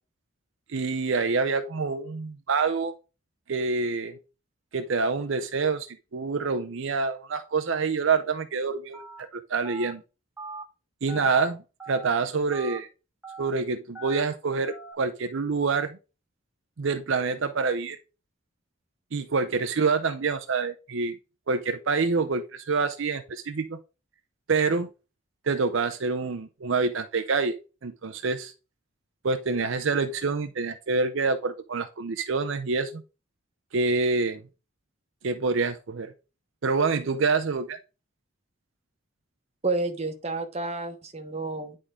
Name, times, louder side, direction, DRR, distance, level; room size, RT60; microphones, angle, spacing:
voice 1, 0.7-2.9 3.5-4.2 4.7-9.0 9.3-10.0 11.0-12.9 13.4-16.0 16.8-18.0 19.1-21.2 21.5-23.8 24.5-24.9 25.5-27.5 27.8-28.5 29.2-33.0 33.7-34.4 35.2-36.1 36.6-37.8, right 4 dB, 65° right, 7 dB, 0.6 m, -26 dB
Telephone, 8.9-9.2 9.6-9.9 10.4-10.6 11.1-11.4 11.8-12.1 12.5-12.8 13.2-13.5 14.0-14.2 14.7-14.9, right 3 dB, 5° right, 1.6 m, -40 dB
voice 2, 39.6-41.8, right 3 dB, 30° right, 6 dB, 1.1 m, -30 dB
9.9 x 3.8 x 3.7 m, 0.31 s
head